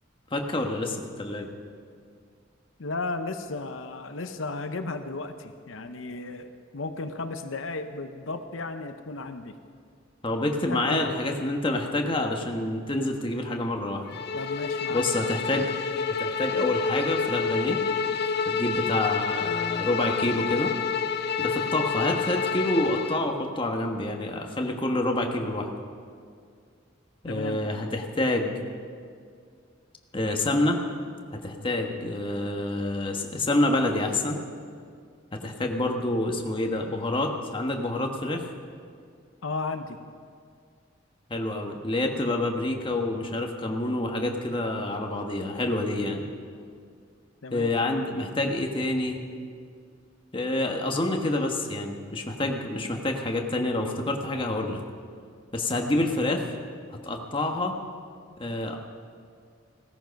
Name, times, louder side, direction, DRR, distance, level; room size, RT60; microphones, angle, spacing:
voice 1, 0.3-1.5 10.2-14.1 14.9-15.7 16.1-17.8 18.4-20.7 21.4-25.7 27.2-28.5 30.1-30.8 31.4-34.4 35.3-38.4 41.3-46.2 47.5-49.2 50.3-54.8 55.5-56.4 56.9-57.8 58.4-58.8, left 1 dB, 25° left, 2 dB, 1.3 m, -27 dB
voice 2, 2.8-9.5 10.7-11.1 14.3-15.0 27.3-27.6 39.4-40.0 47.4-47.7, left 3 dB, 90° left, 8 dB, 0.8 m, -34 dB
Bowed string instrument, 14.1-23.2, left 5 dB, 55° left, 0.8 m, -28 dB
17.0 x 13.5 x 5.3 m, 2.2 s
head